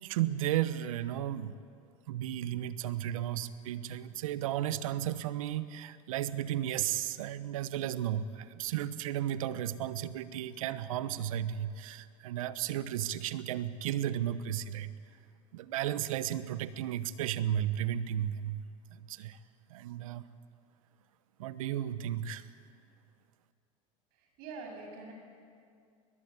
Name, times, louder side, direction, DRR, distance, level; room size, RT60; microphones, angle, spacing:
voice 1, 0.0-1.6 2.1-14.9 15.5-18.6 18.9-19.4 19.7-20.3 21.4-22.5, right 11 dB, 80° right, 14 dB, 1.1 m, -34 dB
voice 2, 24.1-25.1, right 4 dB, 60° right, 2 dB, 7.2 m, -45 dB
21.5 x 21.0 x 8.4 m, 2.3 s
hypercardioid pair, 90°, 17 cm